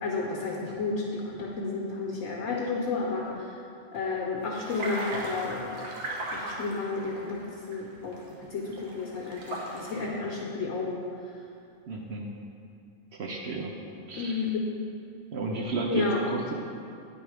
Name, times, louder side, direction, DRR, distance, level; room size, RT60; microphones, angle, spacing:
voice 1, 0.0-3.6 3.9-5.9 6.3-8.2 8.5-11.0 14.2-14.6 15.9-16.2, left 4 dB, 75° left, -3 dB, 1.1 m, -32 dB
sound 1, 4.4-8.3 8.7-10.1, right 1 dB, 85° right, 1.4 m, -37 dB
voice 2, 11.9-12.3 13.1-13.7 14.1-14.5 15.3-16.5, right 3 dB, 60° right, 0 dB, 0.8 m, -32 dB
9.0 x 3.5 x 4.7 m, 2.5 s
omnidirectional pair, 1.4 m